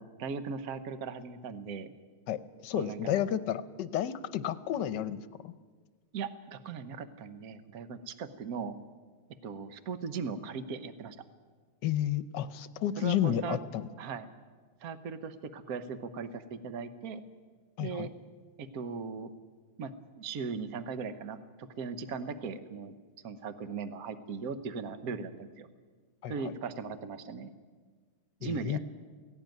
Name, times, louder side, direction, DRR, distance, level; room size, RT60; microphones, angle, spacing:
voice 1, 0.0-1.9 2.8-3.1 6.1-8.8 9.4-11.2 13.0-13.6 14.0-14.3 14.8-17.2 17.8-18.1 18.6-19.3 19.8-23.0 23.2-25.7 26.3-27.5 28.4-28.8, right 5 dB, 55° right, 11 dB, 1.4 m, -38 dB
voice 2, 2.3-5.5 11.8-13.9 17.8-18.1 26.2-26.5 28.4-28.8, left 10 dB, 70° left, 14 dB, 1.3 m, -32 dB
17.0 x 17.0 x 9.2 m, 1.5 s
omnidirectional pair, 2.0 m